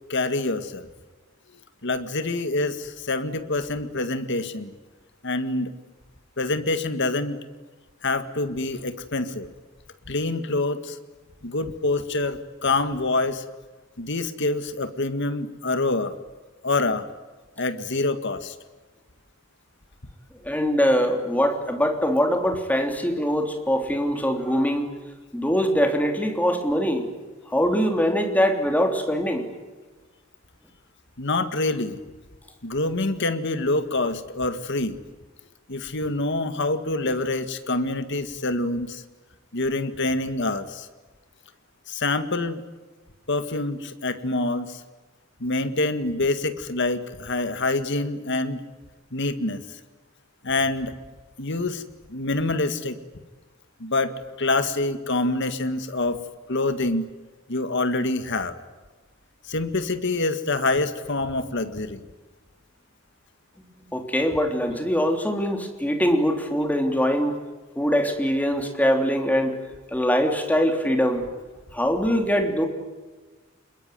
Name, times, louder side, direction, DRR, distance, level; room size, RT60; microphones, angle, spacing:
voice 1, 0.1-0.9 1.8-4.7 5.2-5.7 6.4-7.4 8.0-9.5 10.1-11.0 11.4-13.4 14.0-16.1 16.6-17.1 17.6-18.6 31.2-32.0 32.6-35.0 35.7-39.0 39.5-40.9 41.9-42.6 43.3-44.8 45.4-48.6 49.1-49.6 50.4-51.0 51.4-51.8 52.1-53.0 53.8-56.2 56.5-57.1 57.5-58.6 59.4-62.1, left 2 dB, 60° left, 10 dB, 2.0 m, -26 dB
voice 2, 20.4-24.9 25.3-27.1 27.5-29.5 63.9-67.4 67.7-69.6 69.9-71.2 71.7-72.7, equal, 10° left, 4 dB, 3.2 m, -22 dB
27.0 x 22.0 x 9.3 m, 1.2 s
head